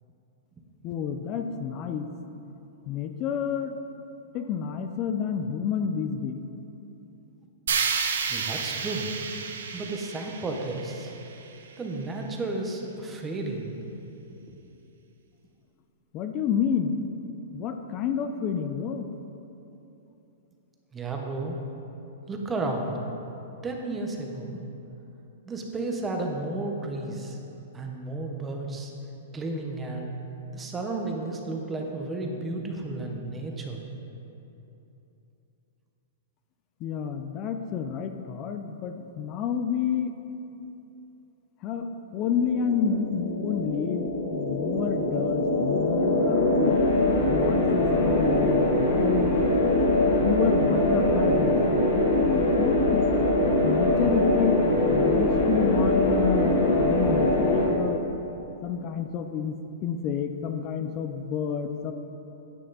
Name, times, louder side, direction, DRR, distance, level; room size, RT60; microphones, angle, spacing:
voice 1, 0.8-2.1 2.9-3.8 4.3-6.5 16.1-17.1 17.5-19.1 36.8-40.1 41.6-41.9 42.1-46.8 47.3-49.4 50.2-53.0 53.6-58.0 58.6-61.9, left 7 dB, 30° left, 7 dB, 0.4 m, -29 dB
sound 1, 7.7-11.7, right 6 dB, 90° right, 0.8 m, -31 dB
voice 2, 8.3-9.1 9.7-11.1 11.8-13.7 14.3-14.4 20.9-21.6 22.3-22.9 23.6-24.6 25.4-27.4 27.7-28.9 29.3-30.1 30.5-33.8, right 2 dB, 10° right, 1 dB, 0.9 m, -32 dB
sound 2, 42.2-57.7, left 1 dB, 60° left, 2.3 m, -23 dB
9.8 x 8.2 x 4.1 m, 2.9 s
hypercardioid pair, 160°, 0 cm